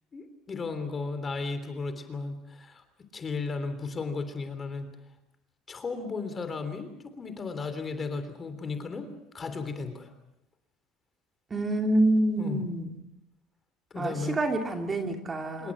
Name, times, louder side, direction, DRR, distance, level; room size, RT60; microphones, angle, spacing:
voice 1, 0.1-2.8 3.1-4.9 5.7-10.1 12.4-12.6 13.9-14.4 15.6-15.7, left 4 dB, 25° left, 9 dB, 3.3 m, -35 dB
voice 2, 11.5-13.0 14.0-15.7, right 1 dB, 20° right, 4 dB, 2.9 m, -27 dB
27.0 x 22.5 x 6.3 m, 0.84 s
cardioid pair, 145°, 0 cm